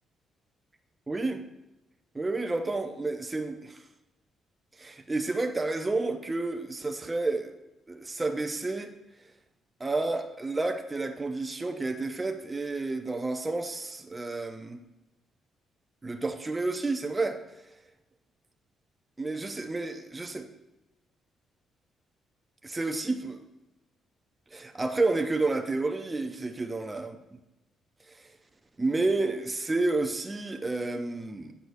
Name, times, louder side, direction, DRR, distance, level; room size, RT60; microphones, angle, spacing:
voice 1, 1.1-1.4 2.1-3.8 4.8-7.5 7.9-8.9 9.8-14.8 16.0-17.4 19.2-20.5 22.6-23.4 24.5-27.2 28.1-28.3 28.8-31.5, right 3 dB, 20° right, 5 dB, 0.5 m, -30 dB
7.7 x 6.7 x 2.5 m, 0.97 s
cardioid pair, 90°, 0 cm